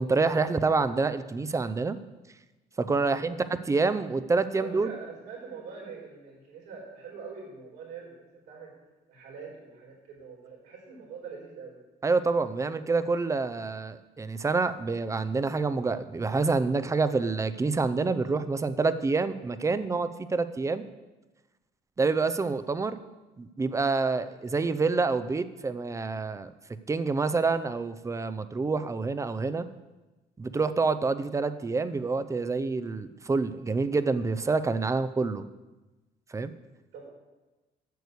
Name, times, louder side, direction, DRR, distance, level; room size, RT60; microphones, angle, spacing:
voice 1, 0.0-2.0 2.8-4.9 12.0-20.9 22.0-23.0 23.4-26.5 26.9-29.7 30.4-35.5 36.3-36.5, right 4 dB, 20° right, 12 dB, 0.6 m, -27 dB
voice 2, 4.5-8.7 9.1-11.8 36.9-37.1, right 5 dB, 85° right, -2 dB, 4.6 m, -44 dB
9.3 x 6.8 x 8.2 m, 1.1 s
cardioid pair, 110°, 17 cm